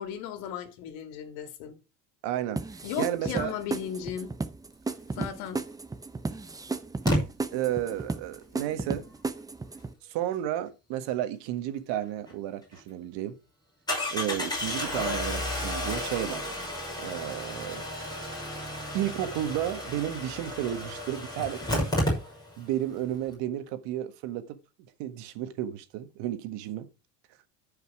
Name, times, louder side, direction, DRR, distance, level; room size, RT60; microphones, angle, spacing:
voice 1, 0.0-1.8 2.8-4.3 5.1-5.6, left 9 dB, 75° left, 2.5 m, -36 dB
voice 2, 2.2-2.6 3.0-3.6 5.2-5.3 7.5-9.1 10.0-13.4 14.1-16.5 17.0-17.8 18.9-21.9 22.6-24.6 25.0-26.9, right 12 dB, 65° right, 1.6 m, -32 dB
sound 1, 2.6-9.9, right 3 dB, 10° right, 0.6 m, -34 dB
Engine starting, 5.6-5.7 7.1-7.2 12.3-12.4 12.7-12.8 13.9-22.7 23.0-23.1 23.3-23.4, left 1 dB, 10° left, 6.1 m, -32 dB
13.5 x 5.6 x 4.8 m
cardioid pair, 135°, 45 cm